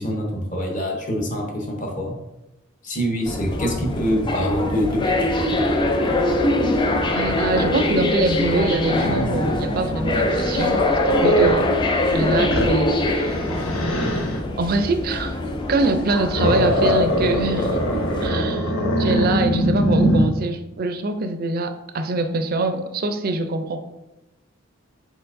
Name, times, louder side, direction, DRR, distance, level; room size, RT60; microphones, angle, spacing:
voice 1, 0.0-2.1 2.8-5.6, equal, 35° left, 1 dB, 0.8 m, -25 dB
sound 1, 3.3-18.3, left 1 dB, 20° left, 0.3 m, -23 dB
Growling, 5.5-11.6 12.1-14.4 15.8-20.3, equal, 80° left, 0.7 m, -23 dB
voice 2, 7.1-11.7 12.1-13.4 14.6-15.4 15.7-23.8, right 2 dB, 45° right, 7 dB, 0.4 m, -24 dB
4.5 x 4.2 x 2.5 m, 0.96 s
head